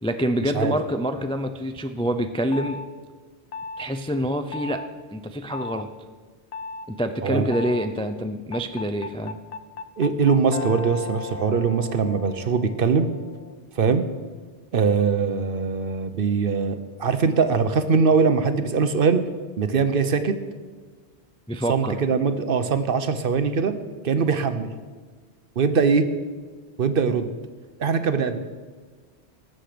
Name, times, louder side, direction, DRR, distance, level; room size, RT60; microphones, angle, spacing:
voice 1, 0.0-2.8 3.8-4.8 5.1-5.9 6.9-9.4 21.5-22.0, equal, 10° left, 7 dB, 0.3 m, -26 dB
sound 1, 2.5-2.9 3.5-3.9 4.5-4.9 5.5-5.8 6.5-6.9 7.5-7.9 8.5-13.6, left 4 dB, 60° left, 0.7 m, -36 dB
voice 2, 7.2-7.5 10.0-13.1 13.8-14.0 14.7-19.2 19.6-20.4 21.7-23.8 24.0-24.7 25.6-26.1 26.8-27.3 27.8-28.4, right 5 dB, 60° right, 10 dB, 0.9 m, -22 dB
19.0 x 7.7 x 5.1 m, 1.5 s
omnidirectional pair, 1.1 m